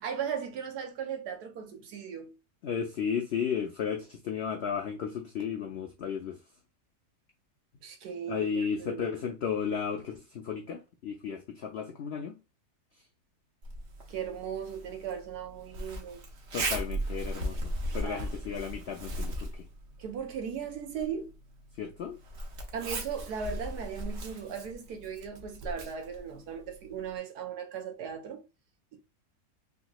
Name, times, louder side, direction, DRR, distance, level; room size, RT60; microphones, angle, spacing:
voice 1, 0.0-2.3 7.8-9.2 14.1-16.2 18.0-18.3 20.0-21.4 22.7-28.4, right 7 dB, 85° right, 1.4 m, -37 dB
voice 2, 2.6-6.4 8.3-12.4 16.5-19.6 21.8-22.2, left 7 dB, 85° left, 0.5 m, -34 dB
Zipper (clothing), 13.6-27.2, right 1 dB, 55° right, 0.9 m, -38 dB
3.5 x 2.9 x 2.3 m
omnidirectional pair, 1.7 m